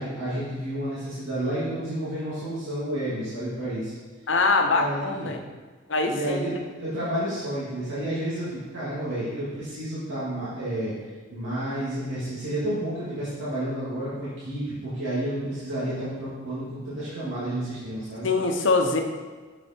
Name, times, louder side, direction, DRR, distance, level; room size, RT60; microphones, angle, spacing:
voice 1, 0.0-3.9 4.7-5.3 6.1-10.9 11.3-18.3, right 1 dB, 85° right, -11 dB, 2.6 m, -30 dB
voice 2, 4.3-5.4 5.9-6.4 18.2-19.0, left 3 dB, 75° left, 4 dB, 0.8 m, -23 dB
7.1 x 6.5 x 4.5 m, 1.4 s
head